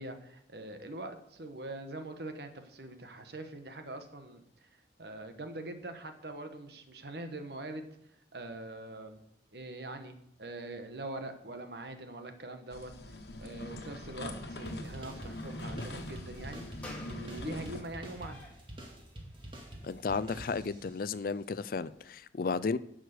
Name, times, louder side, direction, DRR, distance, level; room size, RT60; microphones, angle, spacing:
voice 1, 0.0-7.9 8.3-9.2 9.5-16.6 17.1-18.5, right 2 dB, 65° right, 1.3 m, -43 dB
sound 1, 12.7-17.8, left 1 dB, 70° left, 1.4 m, -42 dB
sound 2, 14.7-21.0, right 1 dB, 30° right, 2.2 m, -47 dB
sound 3, 16.1-22.1, left 1 dB, 10° left, 2.1 m, -55 dB
voice 2, 19.8-22.8, left 4 dB, 55° left, 0.4 m, -33 dB
11.0 x 6.5 x 6.7 m
head